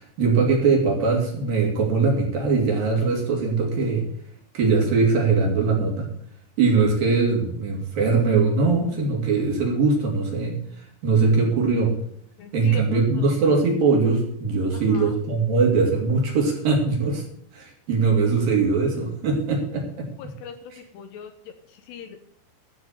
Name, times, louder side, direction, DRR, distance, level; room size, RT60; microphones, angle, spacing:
voice 1, 0.0-4.1 4.5-6.1 6.6-10.6 11.0-11.9 12.5-17.2 17.5-20.1, right 4 dB, 55° right, 0 dB, 3.7 m, -21 dB
voice 2, 12.4-13.3 14.7-15.2 20.2-22.3, left 7 dB, 75° left, 7 dB, 2.8 m, -41 dB
13.0 x 6.0 x 7.4 m, 0.65 s
omnidirectional pair, 5.4 m